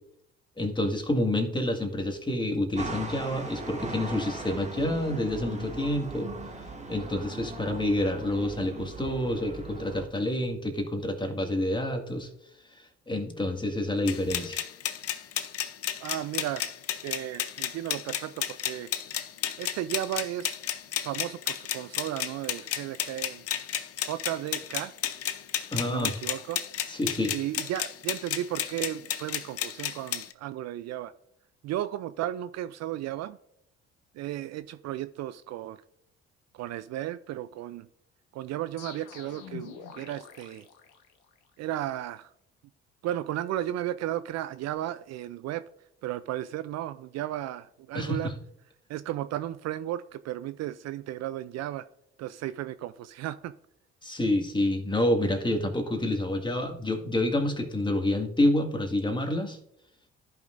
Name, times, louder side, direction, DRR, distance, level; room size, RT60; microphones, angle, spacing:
voice 1, 0.6-6.3 6.9-12.3 13.1-14.6 25.7-26.1 26.9-27.4 47.9-48.3 54.0-59.6, left 1 dB, 15° left, 4 dB, 1.9 m, -28 dB
sound 1, 2.8-10.1, right 3 dB, 20° right, 1.7 m, -39 dB
sound 2, 14.1-30.3, left 10 dB, 45° left, 0.8 m, -33 dB
voice 2, 16.0-16.7 17.0-18.9 19.6-20.6 21.0-23.4 24.1-24.9 25.9-26.6 27.3-31.1 31.6-33.4 34.1-35.8 36.5-37.9 38.3-40.7 41.6-42.3 43.0-45.6 46.0-48.3 48.9-51.9 52.2-53.5, right 13 dB, 55° right, 14 dB, 0.5 m, -34 dB
sound 3, 38.8-41.5, left 6 dB, 75° left, 1.2 m, -45 dB
14.5 x 5.7 x 2.5 m, 0.75 s
hypercardioid pair, 55°, 32 cm